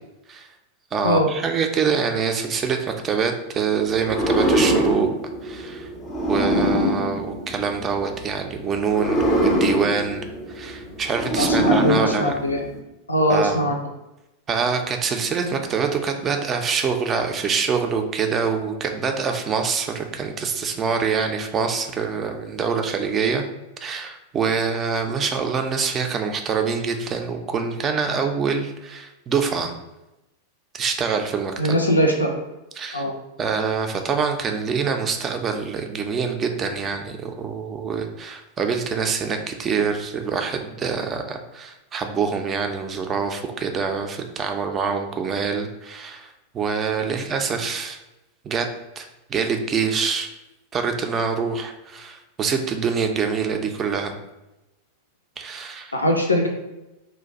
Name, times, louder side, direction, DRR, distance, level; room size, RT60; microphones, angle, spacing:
voice 1, 0.9-5.1 5.4-5.9 6.3-12.3 13.3-13.7 14.5-23.4 23.8-29.7 30.7-31.8 32.8-33.0 33.4-48.0 48.4-48.7 49.0-50.3 50.7-54.1 55.4-55.9, right 5 dB, 25° right, 5 dB, 0.4 m, -25 dB
sound 1, 4.0-8.1 8.8-12.8, right 1 dB, 20° left, 0.6 m, -23 dB
voice 2, 11.4-12.6 13.1-13.7 31.6-32.3 32.9-33.1 55.9-56.5, equal, 80° left, 2 dB, 0.3 m, -21 dB
2.5 x 2.2 x 4.0 m, 0.96 s
figure-of-eight pair, 90°, 0 cm